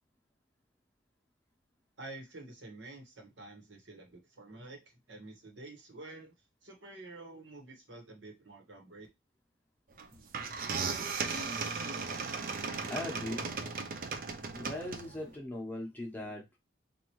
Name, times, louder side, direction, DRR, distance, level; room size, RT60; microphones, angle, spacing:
voice 1, 2.0-4.8 5.1-6.3 6.6-9.1, right 2 dB, 80° right, 1.3 m, -49 dB
sound 1, 10.0-10.1 10.3-15.3, right 4 dB, 45° right, 0.5 m, -36 dB
voice 2, 12.9-13.5 14.5-16.6, left 1 dB, 10° left, 0.9 m, -39 dB
4.4 x 2.6 x 3.0 m
head